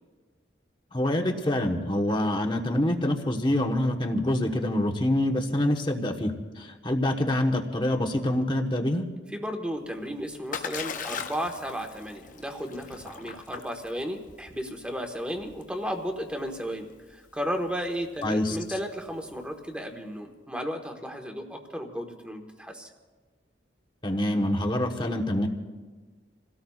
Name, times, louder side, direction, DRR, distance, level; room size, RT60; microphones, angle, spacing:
voice 1, 0.9-9.1 18.2-18.6 24.0-25.5, left 1 dB, 25° left, 3 dB, 1.2 m, -26 dB
voice 2, 9.3-22.9, equal, 5° right, 2 dB, 1.4 m, -34 dB
Splash splatter, 9.8-19.7, left 6 dB, 45° left, 0.7 m, -41 dB
28.0 x 17.5 x 2.4 m, 1.3 s
head